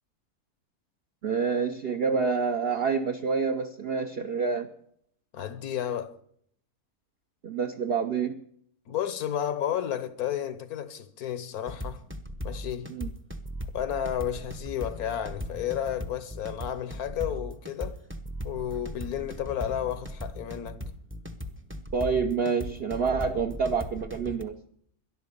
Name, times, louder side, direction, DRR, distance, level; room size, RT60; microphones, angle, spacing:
voice 1, 1.2-4.7 7.4-8.4 12.9-13.1 21.9-24.5, right 5 dB, 50° right, 0.8 m, -27 dB
voice 2, 5.3-6.2 8.9-12.0 12.4-12.9 13.7-18.0 18.4-20.8, left 10 dB, 80° left, 1.5 m, -32 dB
sound 1, 11.7-24.4, equal, 10° right, 0.7 m, -38 dB
12.5 x 11.5 x 6.8 m
omnidirectional pair, 1.6 m